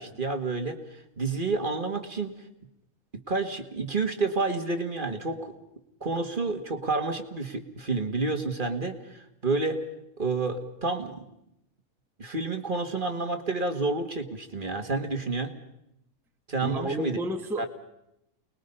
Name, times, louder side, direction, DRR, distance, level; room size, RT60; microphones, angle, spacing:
voice 1, 0.0-2.3 3.3-5.6 6.0-9.8 10.2-11.2 12.2-15.5 16.5-17.2 17.6-17.7, right 3 dB, 35° right, 1.8 m, -29 dB
voice 2, 16.6-17.7, right 1 dB, ahead, 1.2 m, -31 dB
29.0 x 21.0 x 5.5 m
omnidirectional pair, 1.6 m